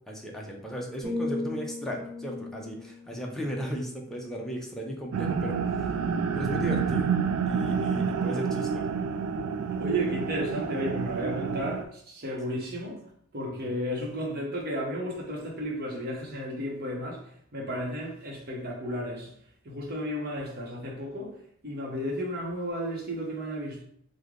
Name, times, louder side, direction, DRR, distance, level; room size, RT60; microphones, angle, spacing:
voice 1, 0.1-5.9 6.3-7.1 7.5-8.9 12.5-12.6 13.5-13.7 17.6-17.7, equal, ahead, 0.5 m, -36 dB
sound 1, 1.0-5.0 5.4-5.7, left 2 dB, 35° right, 1.3 m, -38 dB
sound 2, 5.1-11.8, right 6 dB, 85° right, 0.3 m, -29 dB
voice 2, 9.8-13.0 13.3-19.3 19.6-21.4 21.6-23.8, equal, 50° right, 0.9 m, -33 dB
3.2 x 2.1 x 3.6 m
head